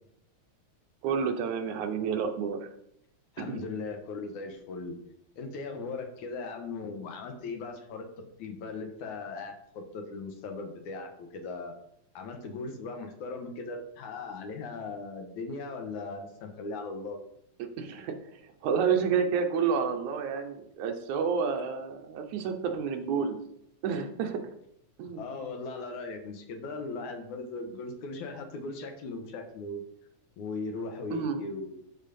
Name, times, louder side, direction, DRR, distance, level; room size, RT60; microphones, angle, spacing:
voice 1, 1.0-2.7 3.4-3.6 17.6-23.4 23.8-24.5 25.0-25.4 31.1-31.4, right 6 dB, 80° right, 5 dB, 2.4 m, -30 dB
voice 2, 3.3-5.0 5.4-11.7 12.1-17.2 25.2-29.8 30.4-31.8, left 3 dB, 80° left, 4 dB, 2.7 m, -38 dB
12.0 x 4.6 x 5.3 m, 0.75 s
omnidirectional pair, 3.5 m